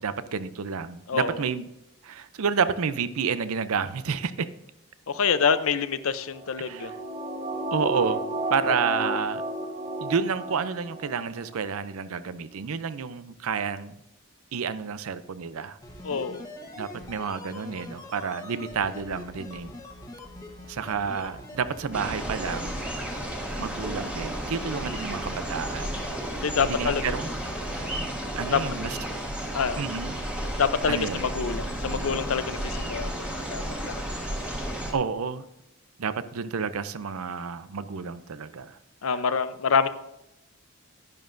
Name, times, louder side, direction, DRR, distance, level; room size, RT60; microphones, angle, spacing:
voice 1, 0.0-1.7 2.0-4.5 6.6-6.9 7.7-8.2 8.5-9.4 10.0-13.9 14.5-15.8 16.8-19.7 20.7-22.8 23.6-26.0 26.6-27.3 27.7-27.9 28.4-29.0 29.8-30.2 30.9-31.2 34.9-35.4 36.0-38.8 39.1-39.2, right 6 dB, 75° right, 13 dB, 0.5 m, -30 dB
voice 2, 1.1-1.4 5.1-6.9 16.0-16.4 26.4-27.1 28.5-28.6 29.5-29.8 30.6-34.0 39.0-39.9, left 6 dB, 70° left, 12 dB, 0.6 m, -26 dB
sound 1, 6.3-11.1 11.4-11.5, right 2 dB, 30° right, 1.0 m, -32 dB
sound 2, 15.8-28.4 28.6-28.7, left 1 dB, 15° left, 1.1 m, -44 dB
sound 3, 21.9-34.9, right 1 dB, 5° right, 1.3 m, -33 dB
11.0 x 10.5 x 2.6 m, 0.86 s
head